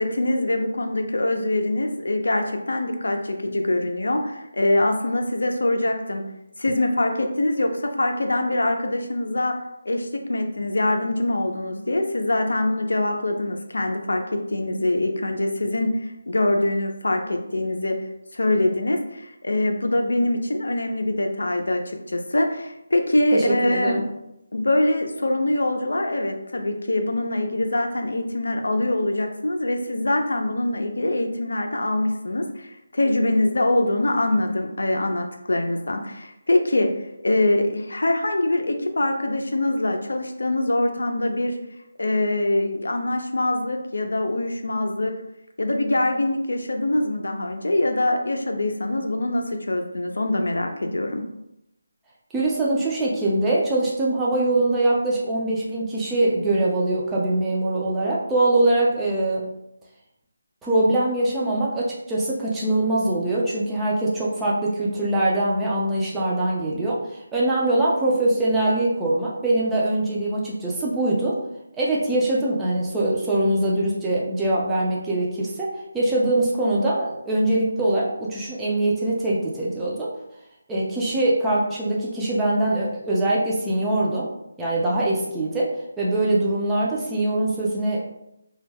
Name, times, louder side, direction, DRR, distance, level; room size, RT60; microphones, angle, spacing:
voice 1, 0.0-6.2 6.6-9.6 9.8-18.0 18.3-24.0 24.5-36.9 37.2-41.6 42.0-45.1 45.6-51.3, left 1 dB, 85° left, 4 dB, 0.4 m, -24 dB
voice 2, 23.3-24.0 52.3-59.5 60.6-67.0 67.3-71.4 71.8-80.1 80.7-84.3 84.6-85.7 86.0-88.0, right 1 dB, 5° right, -7 dB, 0.4 m, -23 dB
2.3 x 2.1 x 3.3 m, 0.84 s
figure-of-eight pair, 165°, 0 cm